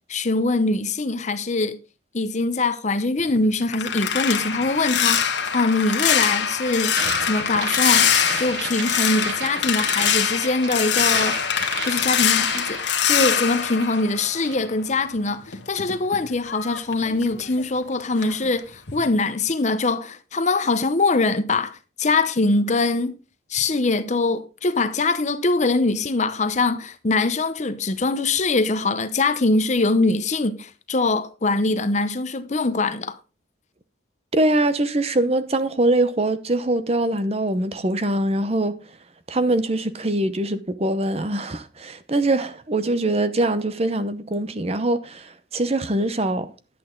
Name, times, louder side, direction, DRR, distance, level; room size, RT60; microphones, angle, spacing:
voice 1, 0.1-1.8 2.1-7.0 7.2-8.1 8.4-11.4 11.8-23.2 23.5-33.2, left 3 dB, 40° left, 0.8 m, -23 dB
sound 1, 3.2-14.8 15.2-17.8 18.2-18.5 18.9-19.1, left 8 dB, 75° left, 1.4 m, -24 dB
sound 2, 6.9-13.4 13.7-14.7, right 6 dB, 70° right, 0.9 m, -34 dB
voice 2, 34.3-38.8 39.3-46.5, right 1 dB, 35° right, 0.8 m, -23 dB
11.0 x 8.3 x 3.8 m
head